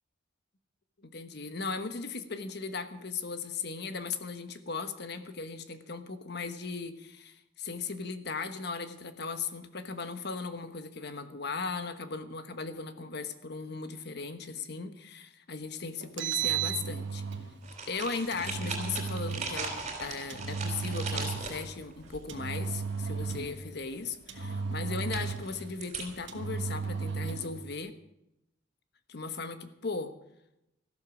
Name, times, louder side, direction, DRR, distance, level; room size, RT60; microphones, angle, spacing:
voice 1, 1.0-17.2 17.9-28.0 29.1-30.1, left 4 dB, 55° left, 9 dB, 1.2 m, -37 dB
Engine, 16.0-17.5 18.3-19.5 20.3-21.6 22.3-23.6 24.3-25.6 26.3-27.5, right 6 dB, 60° right, 1.4 m, -34 dB
sound 1, 17.6-22.9 23.2-23.5 25.1-26.3, right 4 dB, 35° right, 3.4 m, -39 dB
14.5 x 12.0 x 6.3 m, 0.85 s
head